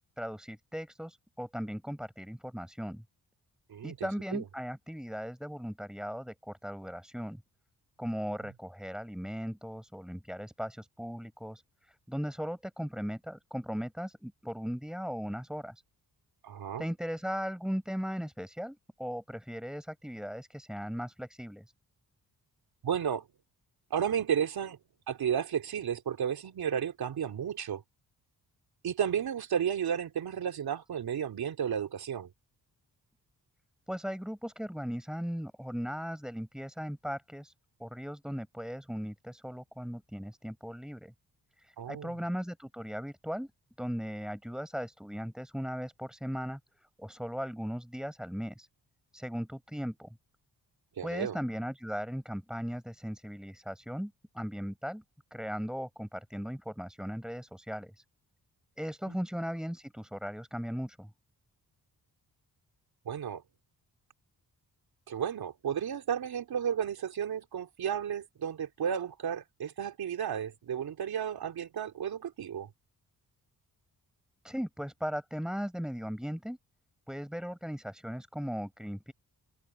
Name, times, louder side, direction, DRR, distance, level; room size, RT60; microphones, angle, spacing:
voice 1, 0.2-3.0 3.8-7.4 8.0-15.8 16.8-21.6 33.9-37.5 37.8-41.1 41.6-43.5 43.8-48.7 49.1-50.1 51.0-55.0 55.3-58.1 58.8-61.1 74.4-76.6 77.1-79.1, equal, ahead, 7.4 m, -38 dB
voice 2, 3.7-4.4 16.4-16.9 22.8-23.2 23.9-24.8 25.1-27.8 28.8-32.3 41.8-42.1 51.0-51.4 59.1-59.2 63.0-63.4 65.1-72.7, right 8 dB, 75° right, 3.1 m, -33 dB
wide cardioid pair, 115°, 37 cm